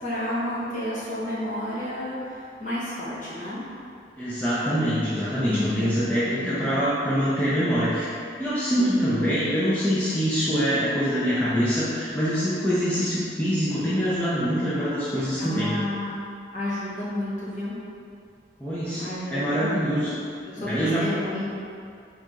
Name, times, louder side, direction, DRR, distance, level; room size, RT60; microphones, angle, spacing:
voice 1, 0.0-3.6 5.5-6.8 8.7-9.4 15.4-16.2 16.5-17.7 19.0-20.2 20.5-21.4, left 1 dB, 45° left, -9 dB, 1.1 m, -31 dB
voice 2, 4.2-8.1 8.4-15.8 18.6-19.0 19.3-20.1 20.7-21.1, equal, 10° left, -11 dB, 0.5 m, -24 dB
3.7 x 2.8 x 3.6 m, 2.4 s
head